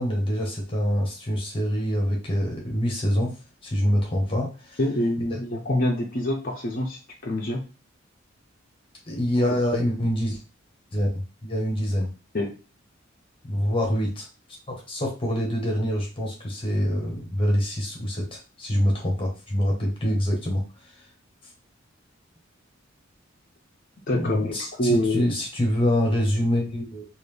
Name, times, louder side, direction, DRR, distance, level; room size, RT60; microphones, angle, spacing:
voice 1, 0.0-3.3 3.6-4.8 9.1-10.4 10.9-12.1 13.5-14.2 14.9-20.6 24.1-27.1, equal, 25° left, -1 dB, 1.3 m, -25 dB
voice 2, 4.8-7.7 12.3-12.5 24.1-25.3, left 1 dB, 45° left, -1 dB, 0.7 m, -26 dB
4.0 x 2.5 x 3.3 m, 0.32 s
head